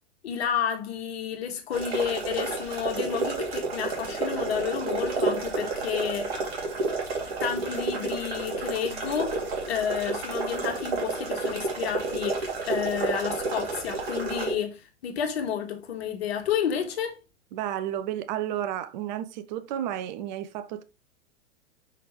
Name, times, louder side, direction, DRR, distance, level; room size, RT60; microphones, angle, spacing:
voice 1, 0.2-6.4 7.4-9.4 9.7-17.2, left 8 dB, 60° left, 1.8 m, -31 dB
sound 1, 1.7-14.5, right 3 dB, 60° right, 2.8 m, -30 dB
voice 2, 17.5-20.8, right 11 dB, 40° right, 0.6 m, -32 dB
6.0 x 5.8 x 3.2 m
figure-of-eight pair, 105°, 35 cm